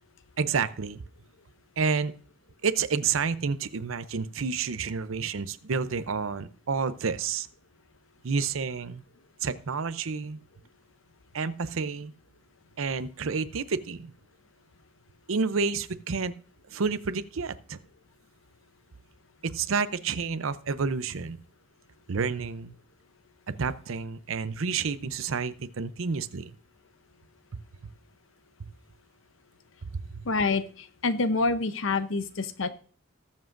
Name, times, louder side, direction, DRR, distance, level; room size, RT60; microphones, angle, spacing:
voice 1, 0.4-1.0 1.8-2.1 2.6-7.5 8.2-9.0 9.4-10.4 11.3-12.1 12.8-14.1 15.3-16.3 16.7-17.8 19.4-21.4 22.1-22.7 23.5-26.5 27.8-27.9 28.6-28.7 29.9-30.2, right 5 dB, 85° right, 13 dB, 0.6 m, -29 dB
voice 2, 30.3-32.7, left 3 dB, 70° left, 11 dB, 0.8 m, -27 dB
19.5 x 7.4 x 2.6 m, 0.42 s
head